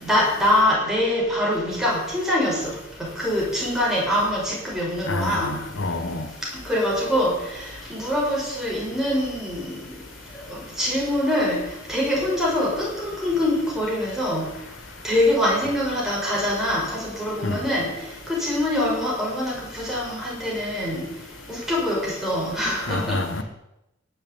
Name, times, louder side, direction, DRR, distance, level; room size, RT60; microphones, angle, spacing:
voice 1, 0.0-2.7 3.2-5.5 6.7-7.3 7.9-9.7 10.8-11.6 11.9-14.4 15.0-17.9 18.3-21.0 21.5-23.2, left 1 dB, ahead, 6.3 m, -24 dB
voice 2, 5.1-6.3 17.4-17.6 22.9-23.4, left 2 dB, 70° left, 1.7 m, -27 dB
17.0 x 7.3 x 9.1 m
head